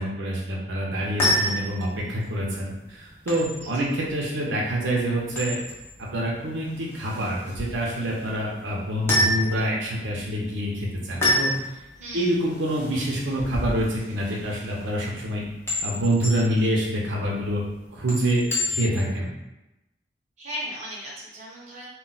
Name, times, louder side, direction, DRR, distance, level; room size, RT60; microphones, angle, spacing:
voice 1, 0.0-5.6 6.0-11.8 12.1-15.4 15.8-17.6 17.9-19.3, right 1 dB, 90° right, -3 dB, 0.6 m, -26 dB
sound 1, 0.9-19.2, left 1 dB, 15° left, 0.7 m, -30 dB
voice 2, 20.4-21.9, equal, 40° right, -5 dB, 0.8 m, -36 dB
2.2 x 2.1 x 3.9 m, 0.93 s
head